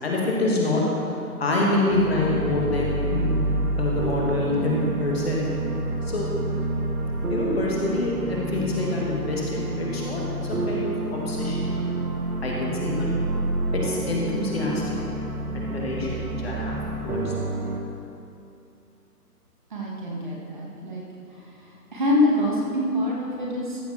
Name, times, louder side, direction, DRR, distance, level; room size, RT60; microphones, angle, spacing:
voice 1, 0.0-0.8 1.4-3.3 3.8-5.4 6.0-6.3 7.3-11.8 12.4-13.1 13.7-15.0 15.5-17.3, left 2 dB, 40° left, -3 dB, 1.9 m, -26 dB
sound 1, 1.9-17.8, right 2 dB, 65° right, 1.4 m, -28 dB
voice 2, 19.7-21.0 21.9-23.8, left 1 dB, 30° right, -4 dB, 1.5 m, -25 dB
14.0 x 6.9 x 4.3 m, 2.7 s
figure-of-eight pair, 155°, 48 cm